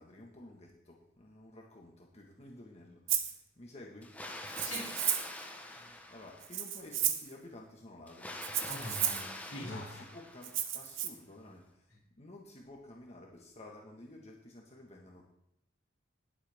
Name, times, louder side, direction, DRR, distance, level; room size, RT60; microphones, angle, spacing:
voice 1, 0.0-4.4 5.7-8.4 9.6-15.2, left 1 dB, 35° left, -1 dB, 1.6 m, -52 dB
Rattle (instrument), 3.1-3.3 4.5-5.4 6.4-7.3 8.4-9.3 10.4-11.1, right 10 dB, 80° right, 1.1 m, -33 dB
Water, 4.0-6.8 8.1-10.9, left 1 dB, 10° left, 1.1 m, -45 dB
voice 2, 4.6-4.9 8.7-10.0, left 1 dB, 85° left, -3 dB, 3.0 m, -43 dB
20.0 x 8.1 x 3.6 m, 0.77 s
head